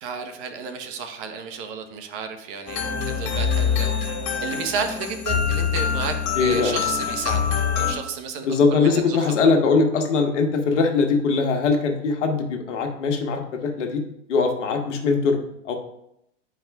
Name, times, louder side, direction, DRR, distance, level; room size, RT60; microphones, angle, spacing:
voice 1, 0.0-3.9 4.4-6.1 6.4-7.4 7.7-9.4, right 6 dB, 45° right, 6 dB, 1.0 m, -32 dB
sound 1, 2.7-7.9, left 7 dB, 45° left, 1.8 m, -25 dB
voice 2, 2.9-3.2 6.4-6.8 8.4-14.0 14.3-15.4 15.6-15.7, left 4 dB, 70° left, 3 dB, 1.3 m, -21 dB
10.5 x 4.8 x 2.3 m, 0.78 s
hypercardioid pair, 120°, 37 cm